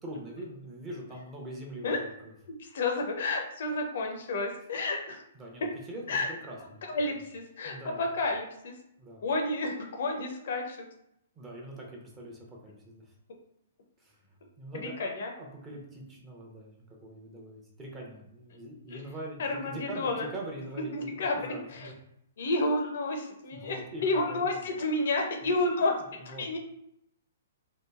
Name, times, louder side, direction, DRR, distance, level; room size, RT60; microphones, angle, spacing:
voice 1, 0.0-2.3 5.4-6.8 7.6-8.0 9.0-9.2 11.4-13.1 14.0-14.2 14.6-21.9 23.5-24.4 25.4-25.5 25.8-25.9 26.2-26.4, right 1 dB, 20° right, -1 dB, 0.7 m, -43 dB
voice 2, 2.6-5.2 6.1-6.3 6.8-8.7 9.2-10.8 14.7-15.3 18.9-19.0 19.4-20.3 20.9-21.9 22.4-25.9 26.3-26.6, left 2 dB, 60° left, 3 dB, 0.5 m, -30 dB
2.9 x 2.4 x 2.3 m, 0.78 s
figure-of-eight pair, 115°, 0 cm